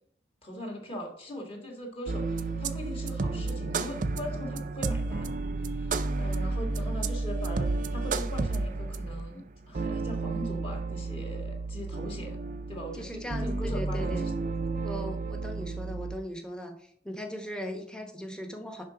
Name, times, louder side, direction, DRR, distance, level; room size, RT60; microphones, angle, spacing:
voice 1, 0.4-12.4 12.7-14.3, equal, 30° left, 1 dB, 1.7 m, -40 dB
sound 1, 2.1-16.2, right 3 dB, 40° right, 0.5 m, -32 dB
voice 2, 12.9-14.3 14.8-18.9, equal, 5° left, 4 dB, 1.0 m, -39 dB
10.5 x 4.0 x 5.0 m, 0.63 s
head